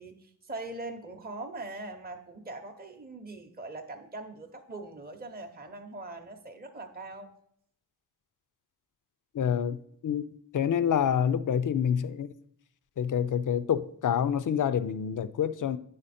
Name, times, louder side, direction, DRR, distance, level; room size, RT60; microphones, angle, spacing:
voice 1, 0.0-7.3, right 2 dB, 25° right, 0.7 m, -41 dB
voice 2, 9.3-9.8 10.0-10.2 10.5-12.3 13.0-15.8, left 8 dB, 50° left, 0.5 m, -27 dB
9.4 x 5.1 x 4.2 m
wide cardioid pair, 90°, 41 cm